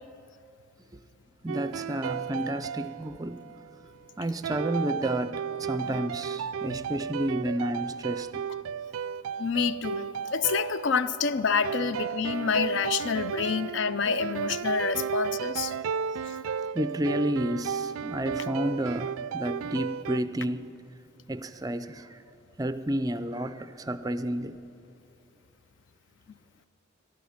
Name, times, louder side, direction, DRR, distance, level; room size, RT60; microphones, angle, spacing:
voice 1, 1.4-3.4 4.2-8.4 16.7-20.7 21.3-22.2 22.6-24.6, right 1 dB, 15° right, 0.4 m, -31 dB
sound 1, 1.5-3.7 4.4-20.2, right 7 dB, 85° right, 0.3 m, -34 dB
voice 2, 9.4-15.7, left 5 dB, 60° left, 0.4 m, -28 dB
19.0 x 12.5 x 5.7 m
head